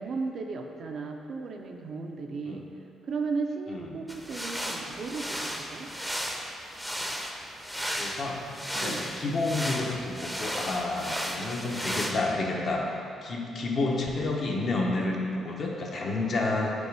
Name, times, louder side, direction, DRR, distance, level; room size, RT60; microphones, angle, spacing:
voice 1, 0.0-2.7 3.0-5.9 8.7-9.0, right 4 dB, 60° right, 3 dB, 0.5 m, -35 dB
sound 1, 4.1-12.1, equal, ahead, 0.6 m, -34 dB
voice 2, 7.9-8.4 8.8-12.9 13.2-16.7, left 2 dB, 55° left, -1 dB, 0.9 m, -30 dB
5.3 x 4.1 x 4.7 m, 2.6 s
cardioid pair, 90°, 0 cm